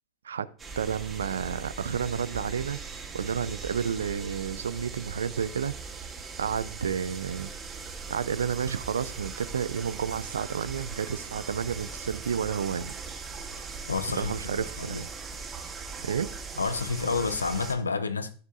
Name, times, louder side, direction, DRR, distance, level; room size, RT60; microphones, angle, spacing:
sound 1, 0.6-17.7, right 4 dB, 25° right, 2.3 m, -40 dB
voice 1, 0.8-2.8 3.1-5.8 6.4-7.5 8.1-12.9 14.2-15.1 16.0-16.3, right 7 dB, 80° right, 0.5 m, -31 dB
voice 2, 13.9-15.0 16.6-18.3, left 4 dB, 90° left, 0.7 m, -30 dB
14.5 x 7.2 x 2.5 m
hypercardioid pair, 90°, 0 cm